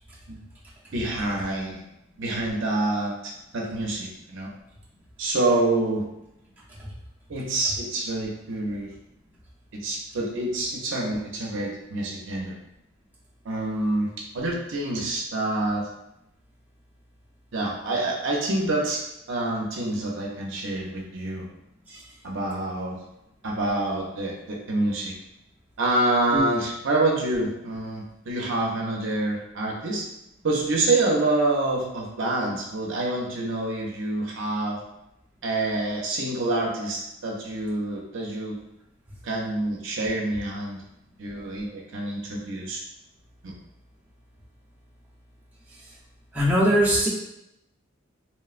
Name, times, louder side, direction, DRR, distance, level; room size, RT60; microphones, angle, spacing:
voice 1, 0.9-1.8 2.2-4.5 5.2-6.1 7.3-8.9 9.7-12.5 13.4-15.9 17.5-19.0 19.3-21.5 22.2-23.0 23.4-25.1 25.8-30.1 30.4-34.8 35.4-38.6 39.2-40.8 41.2-42.8 43.4-43.5, right 2 dB, 60° right, -2 dB, 0.5 m, -27 dB
voice 2, 46.3-47.1, equal, 10° right, -7 dB, 0.5 m, -21 dB
3.1 x 2.1 x 2.4 m, 0.85 s
head